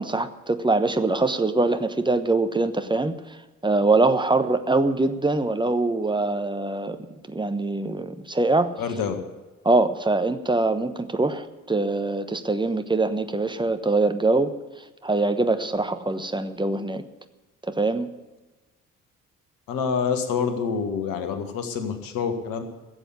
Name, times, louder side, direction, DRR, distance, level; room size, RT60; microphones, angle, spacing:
voice 1, 0.0-3.2 3.6-7.0 7.3-8.7 9.6-14.5 15.0-17.0 17.7-18.1, right 2 dB, 10° right, 9 dB, 1.1 m, -23 dB
voice 2, 8.8-9.2 19.7-22.6, left 6 dB, 60° left, 8 dB, 1.8 m, -27 dB
16.0 x 7.8 x 9.7 m, 1.2 s
figure-of-eight pair, 40°, 39 cm